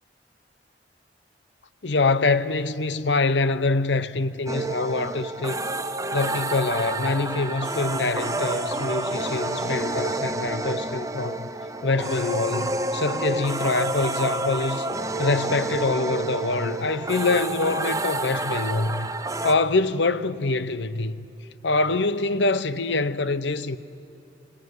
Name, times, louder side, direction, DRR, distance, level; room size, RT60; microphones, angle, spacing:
voice 1, 1.8-5.6 6.1-11.5 11.8-14.9 15.2-19.1 19.4-21.3 21.6-23.8, left 3 dB, 85° left, 0.9 m, -25 dB
sound 1, 4.5-19.5, right 2 dB, 20° right, 0.7 m, -29 dB
26.0 x 19.5 x 9.6 m
head